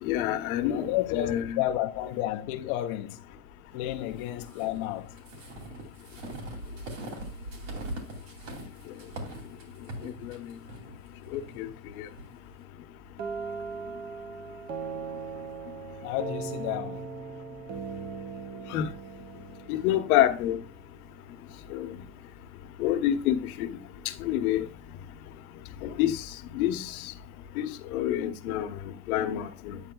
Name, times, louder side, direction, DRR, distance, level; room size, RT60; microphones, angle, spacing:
voice 1, 0.0-1.6 10.0-10.4 11.3-11.7 12.0-12.1 18.7-18.9 19.7-20.6 21.7-22.0 22.8-23.8 24.2-24.6 25.8-26.2 26.5-27.1 27.6-29.8, left 12 dB, 80° left, 1.1 m, -28 dB
voice 2, 0.7-3.2 3.7-5.2 16.0-17.1 21.7-21.8, left 14 dB, 45° left, 0.5 m, -31 dB
sound 1, 4.4-12.3, right 1 dB, 70° right, 2.8 m, -41 dB
sound 2, 13.2-20.9, right 5 dB, 25° right, 0.4 m, -39 dB
8.9 x 8.8 x 2.3 m
supercardioid pair, 165°, 42 cm